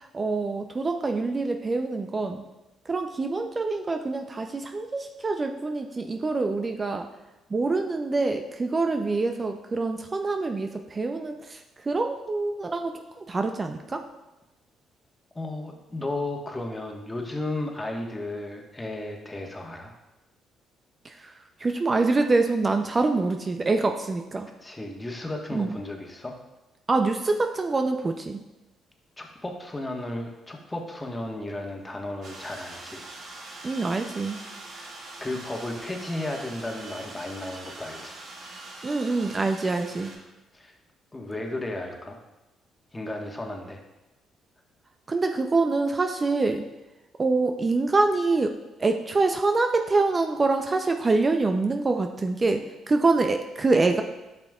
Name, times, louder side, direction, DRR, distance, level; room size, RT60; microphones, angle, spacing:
voice 1, 0.0-2.4 2.9-7.1 7.5-11.6 11.9-14.0 21.0-21.3 21.6-24.5 25.5-25.8 26.9-28.4 33.6-34.4 38.8-40.1 45.1-46.7 47.2-48.5 48.8-54.0, right 3 dB, 35° right, 6 dB, 0.6 m, -25 dB
voice 2, 15.3-19.9 24.6-26.4 29.2-33.0 34.7-34.9 35.2-38.2 40.0-40.1 40.5-40.7 41.1-42.2 42.9-43.8, left 2 dB, 20° left, 1 dB, 1.4 m, -34 dB
sound 1, 32.2-40.2, right 2 dB, 60° right, 2.0 m, -43 dB
10.5 x 5.9 x 2.4 m, 1.0 s
hypercardioid pair, 45°, 0 cm